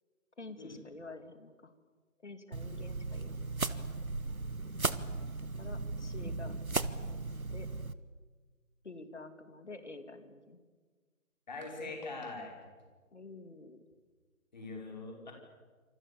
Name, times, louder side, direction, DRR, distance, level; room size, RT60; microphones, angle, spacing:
voice 1, 0.4-1.7 2.2-3.9 5.6-6.5 7.0-7.7 8.8-10.6 13.1-13.8, left 3 dB, 55° left, 9 dB, 3.0 m, -49 dB
sound 1, 2.5-7.9, right 3 dB, 80° right, 1.5 m, -36 dB
voice 2, 11.5-12.6 14.5-15.3, left 3 dB, 30° left, 1 dB, 5.7 m, -42 dB
27.5 x 27.0 x 7.1 m, 1.4 s
figure-of-eight pair, 160°, 42 cm